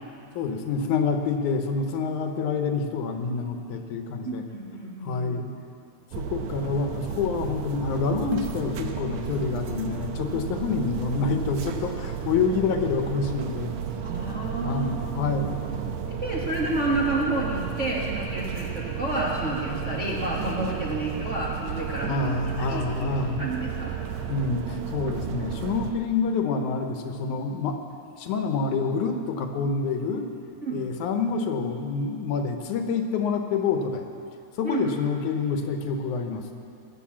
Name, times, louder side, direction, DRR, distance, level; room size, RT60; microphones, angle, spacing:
voice 1, 0.4-4.4 5.0-5.5 6.2-13.7 14.6-15.8 22.1-23.4 24.3-27.8 28.2-30.3 30.7-34.0 34.6-36.4, left 4 dB, 85° left, 5 dB, 2.4 m, -27 dB
voice 2, 4.2-5.3 14.0-22.3 22.7-23.9 30.6-30.8 34.6-34.8, right 2 dB, 35° right, -5 dB, 1.2 m, -30 dB
sound 1, 6.1-25.9, right 8 dB, 75° right, 2.1 m, -33 dB
19.0 x 8.1 x 7.4 m, 2.5 s
omnidirectional pair, 3.4 m